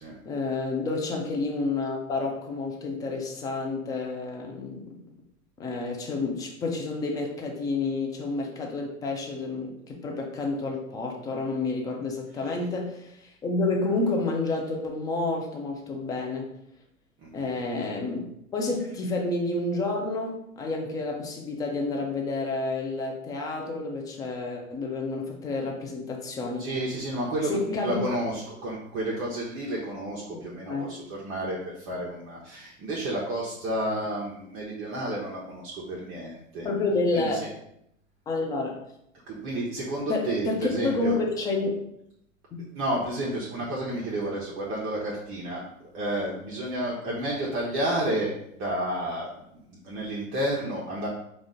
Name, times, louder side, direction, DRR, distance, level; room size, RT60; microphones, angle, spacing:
voice 1, 0.2-4.9 5.6-16.5 17.3-18.2 18.5-26.7 27.4-28.0 30.7-30.9 36.6-37.5 38.3-38.8 40.1-41.7 42.5-42.6 43.6-43.7, left 3 dB, 10° left, 0 dB, 0.4 m, -29 dB
voice 2, 26.6-31.0 31.2-36.7 37.1-37.3 39.3-41.2 42.7-45.6 45.9-48.3 48.6-49.3 49.7-51.1, right 1 dB, 30° right, -4 dB, 0.9 m, -31 dB
4.9 x 2.5 x 3.7 m, 0.76 s
hypercardioid pair, 110°, 41 cm